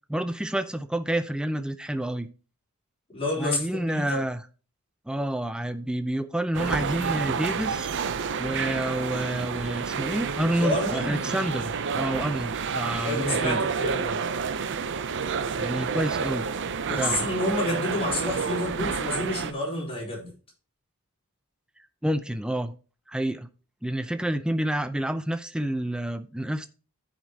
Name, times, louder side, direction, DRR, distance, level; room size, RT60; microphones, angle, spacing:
voice 1, 0.1-2.3 3.4-4.4 5.1-7.9 8.4-13.6 15.6-16.5 17.0-17.3 22.0-22.7 23.1-23.5 23.8-26.7, right 1 dB, 5° right, 10 dB, 0.4 m, -29 dB
voice 2, 3.1-4.2 10.6-11.2 13.0-14.2 16.9-20.3, left 1 dB, 25° left, -3 dB, 3.6 m, -29 dB
sound 1, 6.5-19.5, right 6 dB, 55° right, 0.6 m, -29 dB
14.5 x 5.1 x 2.8 m, 0.35 s
head